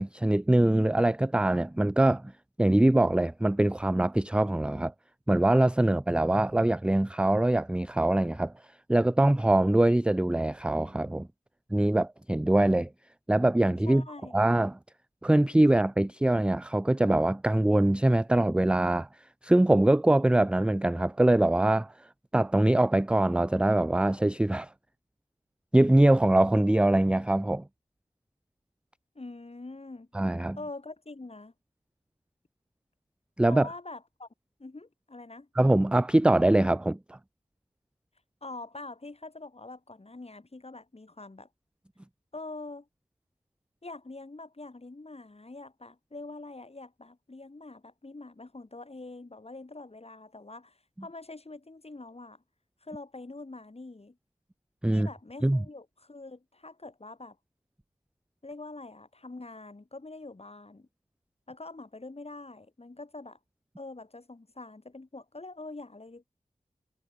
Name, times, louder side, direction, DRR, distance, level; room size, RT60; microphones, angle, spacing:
voice 1, 0.0-2.3 2.6-4.9 5.3-8.5 8.9-11.3 11.7-12.9 13.3-14.0 14.3-14.8 15.2-19.1 19.4-21.9 22.3-24.7 25.7-27.6 30.1-30.6 33.4-33.7 35.6-37.0 54.8-55.1 55.4-55.6, right 1 dB, 10° right, 0.3 m, -23 dB
voice 2, 13.8-14.5 29.1-30.1 30.6-31.5 33.5-34.3 34.6-35.5 38.4-41.5 42.3-42.9 43.8-52.4 52.8-54.2 54.9-57.4 58.4-60.9 61.5-63.4 63.8-66.2, left 2 dB, 50° left, 6.4 m, -44 dB
wide cardioid pair, 45°, 13 cm